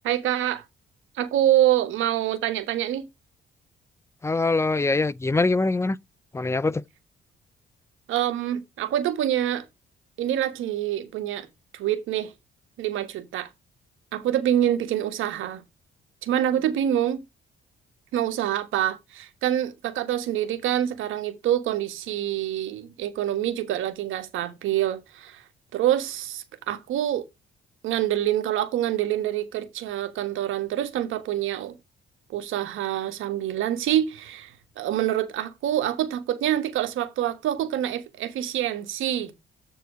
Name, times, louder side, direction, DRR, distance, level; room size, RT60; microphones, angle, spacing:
voice 1, 0.0-0.6 1.1-3.1 8.1-9.6 10.2-11.5 11.7-12.3 12.8-13.5 14.1-15.6 16.2-17.2 18.1-25.4 25.7-27.3 27.8-31.7 32.3-39.4, right 11 dB, 85° right, 1.3 m, -26 dB
voice 2, 4.2-6.0 6.3-6.8, left 3 dB, 15° left, 0.4 m, -23 dB
8.0 x 4.7 x 4.9 m
cardioid pair, 90°, 20 cm